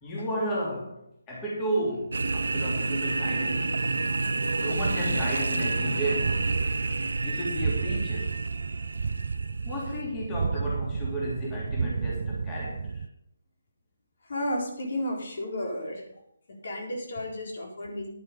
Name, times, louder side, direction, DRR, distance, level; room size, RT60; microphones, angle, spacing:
voice 1, 0.0-1.0 1.3-3.9 4.6-6.5 7.2-8.4 9.6-13.0, right 1 dB, 15° left, -4 dB, 3.3 m, -33 dB
sound 1, 2.1-10.0, right 3 dB, 80° right, 0.9 m, -29 dB
sound 2, 4.7-13.1, right 5 dB, 55° right, 0.5 m, -33 dB
voice 2, 14.2-16.0 16.6-18.1, left 1 dB, 55° left, 0 dB, 4.1 m, -32 dB
11.5 x 9.5 x 5.3 m, 0.74 s
hypercardioid pair, 165°, 0 cm